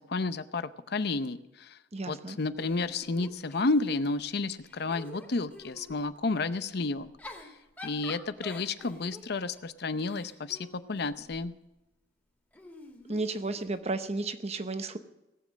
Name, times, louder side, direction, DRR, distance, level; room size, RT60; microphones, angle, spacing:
voice 1, 0.0-1.8 2.1-7.1 7.8-11.5, left 3 dB, 60° left, 13 dB, 0.7 m, -31 dB
voice 2, 1.9-2.4 13.1-15.0, right 3 dB, 35° right, 10 dB, 0.9 m, -33 dB
Giggle / Chuckle chortle, 2.6-4.2 4.6-6.0 7.0-11.5 12.5-13.9, left 2 dB, 10° left, 2.2 m, -48 dB
18.0 x 7.5 x 7.4 m, 0.97 s
head